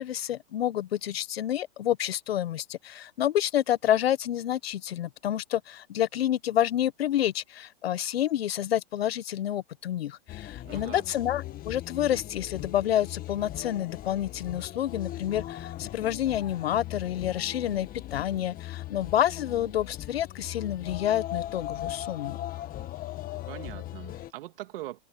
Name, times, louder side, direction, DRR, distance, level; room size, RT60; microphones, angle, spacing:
voice 1, 0.0-22.4, left 11 dB, 85° left, 1.2 m, -29 dB
sound 1, 10.3-24.3, left 13 dB, 30° left, 1.8 m, -39 dB
voice 2, 10.6-11.0 23.5-25.0, right 15 dB, 65° right, 2.2 m, -41 dB
open air
hypercardioid pair, 125°, 30 cm